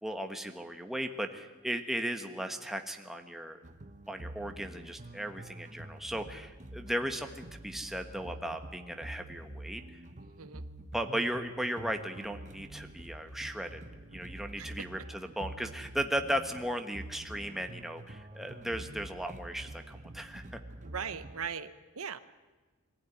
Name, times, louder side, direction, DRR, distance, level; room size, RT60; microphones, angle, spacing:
voice 1, 0.0-3.6 4.1-10.0 10.9-13.8 14.1-20.6, equal, ahead, 5 dB, 1.3 m, -36 dB
sound 1, 3.6-21.5, right 1 dB, 35° right, 0.9 m, -47 dB
voice 2, 10.2-10.6 14.6-14.7 20.8-22.2, right 6 dB, 70° right, 12 dB, 1.0 m, -39 dB
23.5 x 15.5 x 9.9 m, 1.3 s
head